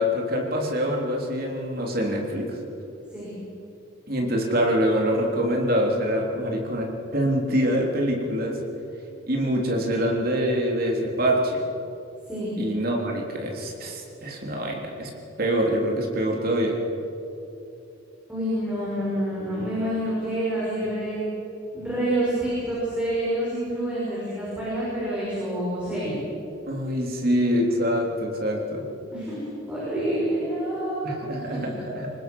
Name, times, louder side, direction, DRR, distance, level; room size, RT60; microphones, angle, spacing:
voice 1, 0.0-2.6 4.1-8.6 9.3-11.6 12.6-15.1 15.4-16.8 26.7-28.8 31.0-32.1, equal, 45° right, 0 dB, 3.5 m, -25 dB
voice 2, 18.3-21.2 21.7-26.2 29.1-29.4 29.7-31.7, right 1 dB, 5° right, -9 dB, 5.9 m, -27 dB
25.0 x 19.5 x 6.2 m, 2.8 s
head